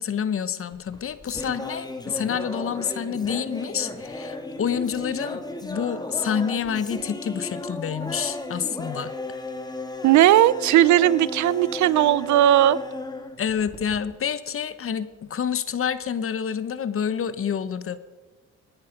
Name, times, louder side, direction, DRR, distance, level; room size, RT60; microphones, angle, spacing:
voice 1, 0.0-9.1 13.4-18.0, left 7 dB, 45° left, 15 dB, 0.9 m, -28 dB
sound 1, 0.7-14.2, left 2 dB, 15° left, 1.7 m, -35 dB
voice 2, 10.0-12.8, right 13 dB, 70° right, 20 dB, 0.6 m, -17 dB
19.0 x 10.5 x 5.2 m, 1.3 s
cardioid pair, 90°, 30 cm